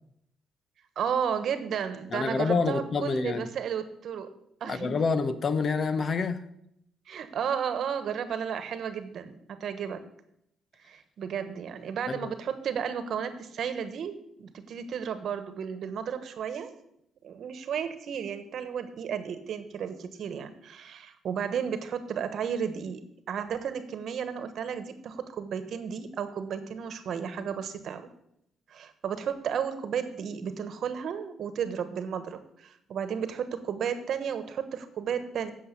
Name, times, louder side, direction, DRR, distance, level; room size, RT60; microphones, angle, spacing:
voice 1, 0.9-4.3 4.6-5.0 7.1-10.0 10.8-16.7 17.2-28.1 28.7-35.5, right 7 dB, 65° right, 1.2 m, -33 dB
voice 2, 2.1-3.5 4.7-6.5 12.1-12.3, left 4 dB, 45° left, 0.9 m, -27 dB
8.0 x 7.3 x 8.5 m
cardioid pair, 90°, 0 cm